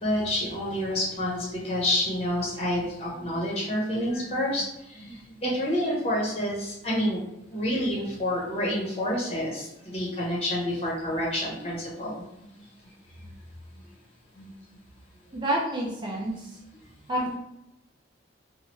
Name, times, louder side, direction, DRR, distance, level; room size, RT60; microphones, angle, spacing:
voice 1, 0.0-4.6 4.9-5.1 5.4-7.2 7.5-12.2 14.4-14.5, left 1 dB, 30° left, -5 dB, 0.9 m, -28 dB
voice 2, 15.3-16.6 17.1-17.4, right 1 dB, 25° right, -2 dB, 0.4 m, -29 dB
3.1 x 2.2 x 3.0 m, 0.85 s
head